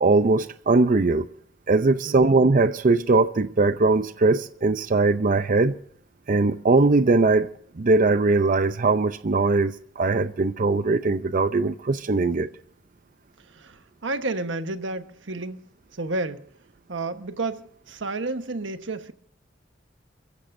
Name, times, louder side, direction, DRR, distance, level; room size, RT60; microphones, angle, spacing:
voice 1, 0.0-1.3 1.7-5.8 6.3-12.5, right 3 dB, 45° right, 0.6 m, -20 dB
voice 2, 2.0-2.4 13.4-16.5 16.9-19.1, right 2 dB, 90° right, 1.2 m, -31 dB
29.5 x 15.0 x 2.6 m
head